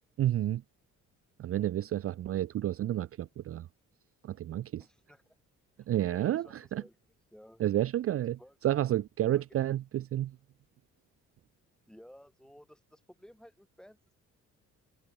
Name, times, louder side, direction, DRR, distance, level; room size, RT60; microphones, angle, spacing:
voice 1, 0.2-0.6 1.4-3.7 4.2-4.9 5.9-6.8 7.6-10.4, right 12 dB, 50° right, 0.5 m, -30 dB
voice 2, 4.8-5.4 5.8-7.0 7.3-7.6 8.4-8.6 9.3-9.4 11.9-14.1, equal, ahead, 6.3 m, -55 dB
cardioid pair, 90°, 30 cm